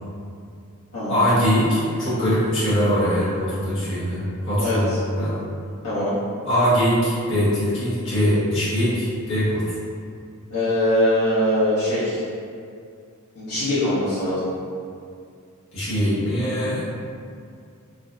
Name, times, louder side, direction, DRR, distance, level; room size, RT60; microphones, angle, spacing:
voice 1, 1.1-5.4 6.4-9.8 15.7-16.8, equal, 60° left, -11 dB, 1.2 m, -22 dB
voice 2, 4.6-5.0 5.8-6.1 10.5-12.2 13.3-14.4, left 1 dB, 75° left, -14 dB, 0.9 m, -22 dB
3.4 x 2.0 x 2.6 m, 2.3 s
head